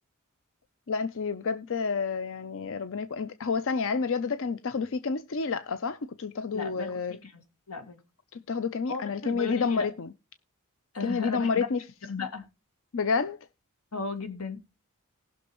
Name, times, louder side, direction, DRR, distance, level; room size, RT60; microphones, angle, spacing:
voice 1, 0.9-7.2 8.3-10.1 11.0-11.8 12.9-13.4, left 5 dB, 65° left, 0.6 m, -29 dB
voice 2, 6.5-7.4 7.7-8.0 8.9-9.9 10.9-11.7 12.1-12.5 13.9-14.6, left 4 dB, 80° left, 2.2 m, -35 dB
18.5 x 6.2 x 3.0 m
head